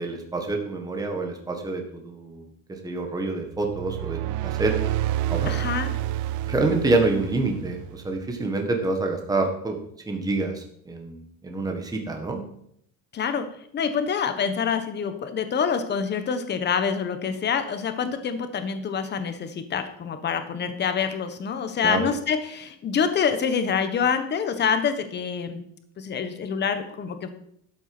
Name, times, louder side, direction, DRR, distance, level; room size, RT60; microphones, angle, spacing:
voice 1, 0.0-4.7 5.3-5.5 6.5-9.8 10.1-12.4 21.8-22.1, right 3 dB, 10° right, 3 dB, 1.6 m, -27 dB
sound 1, 3.5-8.2, right 14 dB, 60° right, 0.6 m, -29 dB
voice 2, 5.5-5.9 13.1-13.5 13.7-25.6 26.0-27.3, left 6 dB, 30° left, 9 dB, 1.3 m, -26 dB
12.0 x 8.2 x 6.2 m, 0.71 s
cardioid pair, 155°, 34 cm